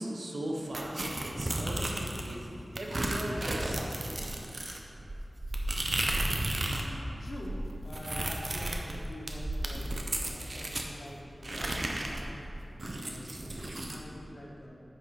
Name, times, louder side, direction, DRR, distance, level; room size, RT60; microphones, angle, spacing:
voice 1, 0.0-4.5, right 1 dB, 75° right, -1 dB, 1.3 m, -39 dB
sound 1, 0.7-2.4 2.8-6.9 7.2-10.9 11.4-14.0, right 1 dB, 55° right, 0.9 m, -34 dB
voice 2, 6.6-10.0 10.3-12.4 12.8-14.8, left 1 dB, 70° left, -2 dB, 1.6 m, -45 dB
9.5 x 6.3 x 5.0 m, 3.0 s
wide cardioid pair, 55°, 0 cm